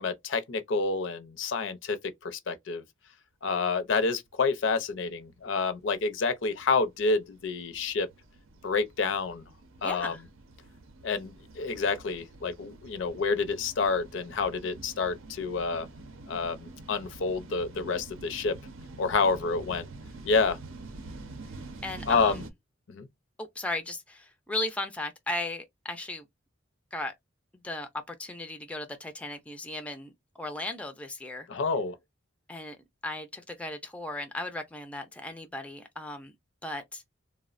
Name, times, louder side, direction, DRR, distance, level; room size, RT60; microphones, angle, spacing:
voice 1, 0.0-2.0 2.2-2.8 3.4-8.1 8.6-9.4 9.8-10.1 11.0-15.9 16.3-18.6 19.0-19.9 20.2-20.6 22.1-22.4 22.9-23.1 31.5-31.9, left 4 dB, 65° left, 0.5 m, -28 dB
sound 1, 4.9-22.5, right 2 dB, 85° right, 0.6 m, -47 dB
voice 2, 9.8-10.2 21.8-22.4 23.4-26.3 26.9-27.1 27.6-30.1 30.4-31.5 32.5-32.8 33.0-36.3 36.6-37.0, left 2 dB, 5° left, 0.3 m, -36 dB
3.2 x 2.0 x 2.4 m
head